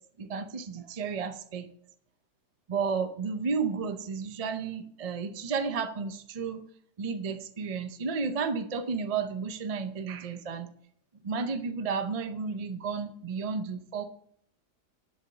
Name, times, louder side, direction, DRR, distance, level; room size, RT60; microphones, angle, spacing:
voice 1, 0.2-1.7 2.7-6.6 7.0-10.7 11.2-14.0, right 5 dB, 50° right, 8 dB, 0.4 m, -32 dB
7.8 x 6.5 x 7.1 m, 0.66 s
omnidirectional pair, 1.7 m